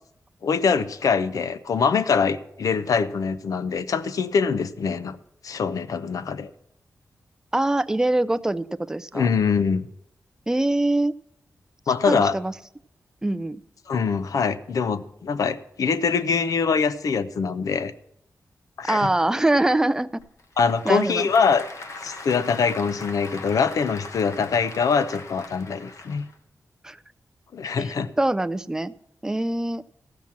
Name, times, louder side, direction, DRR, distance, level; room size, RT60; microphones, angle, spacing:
voice 1, 0.4-5.2 5.4-6.5 9.1-9.9 11.9-12.4 13.9-17.9 18.8-19.1 20.6-21.7 22.0-26.2 27.5-28.1, left 5 dB, 80° left, 13 dB, 0.6 m, -23 dB
voice 2, 7.5-9.3 10.5-11.2 12.0-12.5 13.2-13.6 18.9-20.2 20.8-21.3 26.8-27.0 27.8-27.9 28.2-28.9 29.2-29.8, right 1 dB, 10° right, 15 dB, 0.3 m, -23 dB
Applause / Crowd, 20.2-26.4, left 3 dB, 55° left, 1.1 m, -40 dB
15.0 x 6.0 x 7.2 m, 0.78 s
wide cardioid pair, 150°, 6 cm